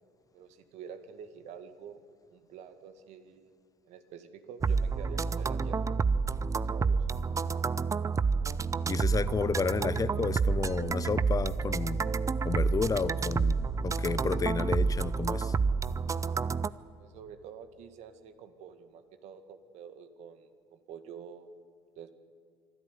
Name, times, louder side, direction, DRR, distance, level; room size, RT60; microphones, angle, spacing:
voice 1, 0.3-2.0 2.3-3.5 3.8-5.8 6.5-7.1 17.0-21.5 22.0-22.1, right 7 dB, 65° right, 9 dB, 2.0 m, -48 dB
sound 1, 4.6-16.7, right 5 dB, 25° right, 0.7 m, -29 dB
voice 2, 8.9-12.2 12.4-15.5, left 5 dB, 30° left, 16 dB, 0.9 m, -31 dB
25.0 x 12.5 x 9.7 m, 2.2 s
hypercardioid pair, 75°, 12 cm